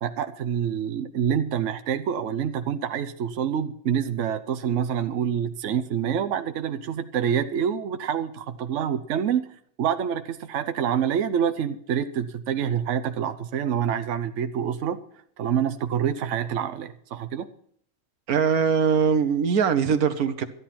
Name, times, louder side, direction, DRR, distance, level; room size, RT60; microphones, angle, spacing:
voice 1, 0.0-9.5 9.8-15.0 15.4-17.5, right 8 dB, 60° right, 1.1 m, -27 dB
voice 2, 18.3-20.4, right 6 dB, 80° right, 1.5 m, -21 dB
13.0 x 11.0 x 5.8 m
omnidirectional pair, 1.5 m